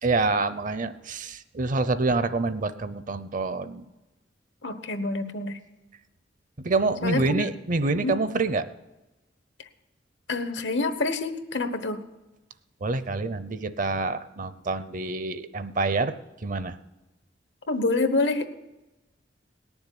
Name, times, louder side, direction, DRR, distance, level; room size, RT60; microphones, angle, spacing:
voice 1, 0.0-3.9 6.6-8.7 12.8-16.1 16.4-16.8, right 3 dB, 45° right, 13 dB, 0.7 m, -27 dB
voice 2, 4.6-5.6 7.0-7.4 7.9-8.1 10.3-12.0 17.7-18.5, left 3 dB, 80° left, 10 dB, 1.2 m, -27 dB
18.5 x 7.2 x 10.0 m, 1.1 s
head